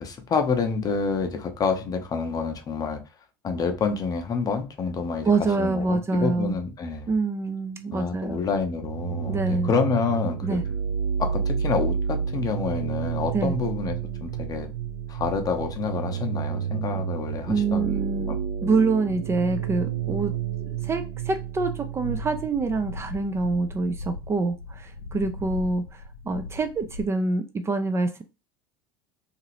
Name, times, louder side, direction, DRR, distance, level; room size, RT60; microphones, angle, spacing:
voice 1, 0.0-3.0 3.4-5.3 5.6-7.1 7.9-10.6 11.2-14.7 15.1-18.7, left 5 dB, 30° left, 0.7 m, -28 dB
voice 2, 5.2-6.6 7.1-8.4 9.3-9.7 10.4-10.6 13.3-13.5 17.5-18.3 18.6-20.3 20.6-28.2, right 3 dB, 20° right, 0.4 m, -26 dB
sound 1, 8.8-22.5, right 7 dB, 75° right, 0.7 m, -30 dB
sound 2, 22.0-27.0, left 2 dB, 85° left, 0.6 m, -38 dB
2.8 x 2.5 x 2.9 m
hypercardioid pair, 75°, 12 cm